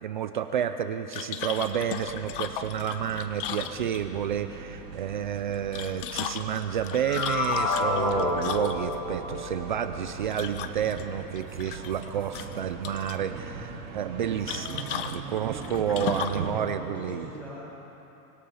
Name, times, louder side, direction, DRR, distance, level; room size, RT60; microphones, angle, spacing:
voice 1, 0.0-17.3, right 9 dB, 35° right, 9 dB, 0.4 m, -30 dB
sound 1, 1.1-4.3 5.5-9.0 10.3-11.0 11.4-12.1 12.3-13.2 14.5-16.5, left 9 dB, 35° left, 0.7 m, -36 dB
sound 2, 1.4-16.6, right 5 dB, 55° right, 3.3 m, -41 dB
sound 3, 6.7-10.2, left 3 dB, 65° left, 4.9 m, -29 dB
voice 2, 15.8-17.5, equal, 5° left, -10 dB, 6.9 m, -40 dB
25.0 x 20.5 x 5.6 m, 2.9 s
supercardioid pair, 170°, 48 cm